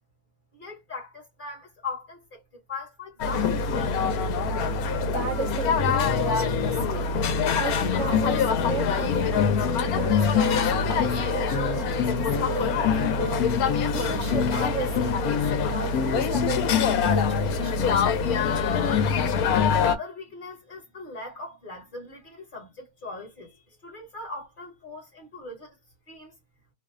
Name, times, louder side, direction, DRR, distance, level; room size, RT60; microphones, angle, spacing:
voice 1, 0.5-4.1 19.5-25.8 26.1-26.3, left 3 dB, 40° left, 1.0 m, -40 dB
sound 1, 3.2-20.0, left 6 dB, 80° left, 1.0 m, -24 dB
voice 2, 5.1-7.1 7.6-18.0, right 3 dB, 65° right, 0.8 m, -35 dB
Wind instrument woodwind instrument, 7.9-10.6 11.0-14.4, right 5 dB, 50° right, 0.5 m, -42 dB
2.8 x 2.1 x 2.3 m
omnidirectional pair, 1.6 m